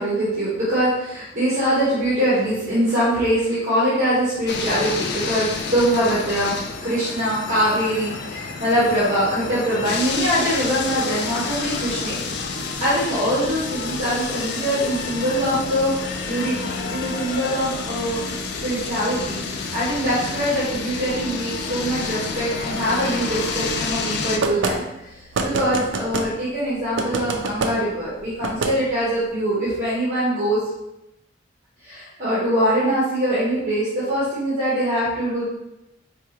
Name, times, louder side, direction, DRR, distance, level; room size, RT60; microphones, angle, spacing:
voice 1, 0.0-12.2 12.8-15.9 16.3-18.2 18.6-19.4 19.7-24.8 25.4-30.6 31.8-35.4, equal, 40° right, -10 dB, 1.1 m, -23 dB
sound 1, 4.5-24.4, left 4 dB, 55° left, 0.3 m, -29 dB
sound 2, 24.4-24.8 25.3-26.3 27.0-27.7 28.4-28.7, right 3 dB, 70° right, 0.4 m, -24 dB
4.4 x 2.4 x 2.9 m, 0.89 s
head